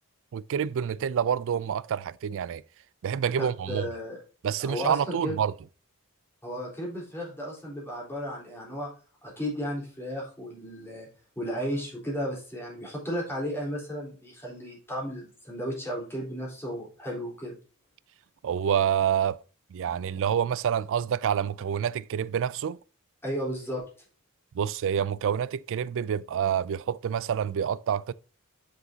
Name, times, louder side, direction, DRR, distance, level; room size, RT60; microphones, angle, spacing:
voice 1, 0.3-2.6 3.0-3.8 4.4-5.5 18.4-19.4 19.7-22.8 24.5-28.1, right 8 dB, 60° right, 0.4 m, -27 dB
voice 2, 3.4-4.2 4.6-5.3 6.4-8.9 9.2-11.1 11.4-17.6 23.2-23.8, equal, 10° left, 3.8 m, -34 dB
7.3 x 6.4 x 2.8 m
head